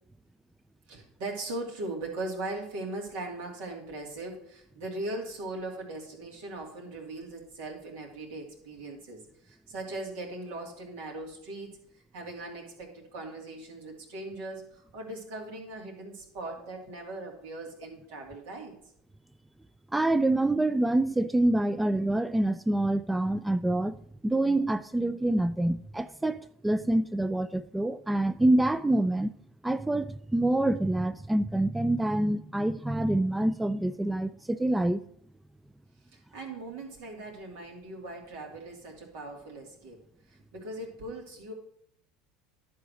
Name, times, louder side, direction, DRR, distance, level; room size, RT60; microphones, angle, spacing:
voice 1, 0.9-11.8 12.1-18.8 36.1-40.0 40.3-41.5, right 2 dB, 75° right, 2.8 m, -39 dB
voice 2, 19.9-24.0 24.2-29.3 29.6-35.0, right 1 dB, 10° right, 0.4 m, -26 dB
11.0 x 3.8 x 6.3 m
hypercardioid pair, 95°, 0 cm